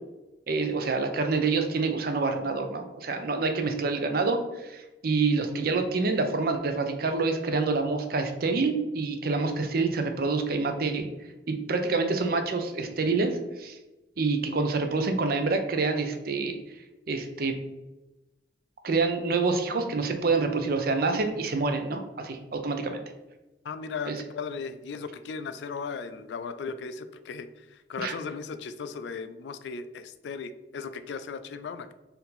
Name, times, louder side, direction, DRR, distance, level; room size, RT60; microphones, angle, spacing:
voice 1, 0.5-11.1 11.5-13.8 14.2-16.6 17.1-17.5 18.8-23.0 24.1-24.2 28.0-28.1, right 3 dB, 55° right, 6 dB, 0.5 m, -27 dB
voice 2, 23.6-31.9, left 5 dB, 80° left, 11 dB, 0.3 m, -37 dB
4.4 x 2.7 x 3.9 m, 1.0 s
head